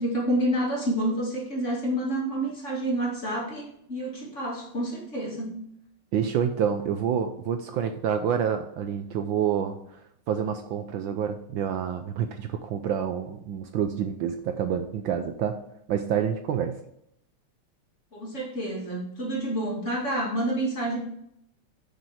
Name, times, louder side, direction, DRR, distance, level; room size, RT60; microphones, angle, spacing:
voice 1, 0.0-5.6 18.1-21.0, right 1 dB, 35° left, -3 dB, 2.9 m, -28 dB
voice 2, 6.1-15.6 15.9-16.8, right 8 dB, 70° right, 7 dB, 1.3 m, -28 dB
8.3 x 6.3 x 4.9 m, 0.75 s
omnidirectional pair, 2.4 m